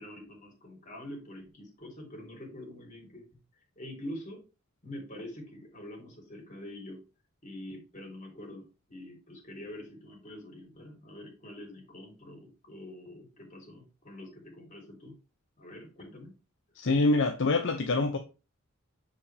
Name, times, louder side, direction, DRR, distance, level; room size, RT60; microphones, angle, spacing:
voice 1, 0.0-4.4 4.8-7.0 7.4-15.1 15.6-16.3, left 1 dB, 35° left, 3.3 m, -45 dB
voice 2, 16.7-18.2, left 3 dB, 60° left, 0.7 m, -25 dB
7.1 x 4.9 x 3.3 m
head